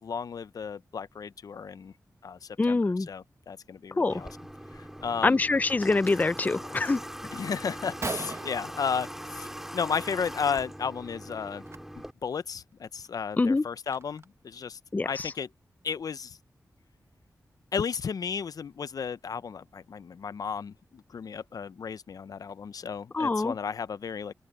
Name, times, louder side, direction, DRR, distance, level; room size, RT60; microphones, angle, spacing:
voice 1, 0.0-1.9 2.2-4.3 4.7-5.4 7.3-11.6 12.0-14.8 15.0-15.5 15.8-16.4 17.7-24.3, left 6 dB, 75° left, 0.6 m, -34 dB
voice 2, 2.6-3.1 4.0-4.2 5.2-7.0 13.4-13.6 14.9-15.3 23.1-23.5, left 3 dB, 25° left, 0.4 m, -25 dB
Water / Water tap faucet, 4.1-12.1, equal, 5° right, 2.5 m, -41 dB
Gunshot gunfire, 8.0-9.6 9.9-10.3 10.6-10.8 11.6-11.8 12.3-12.4 12.8-14.4, right 3 dB, 45° right, 1.1 m, -40 dB
cardioid pair, 55°, 6 cm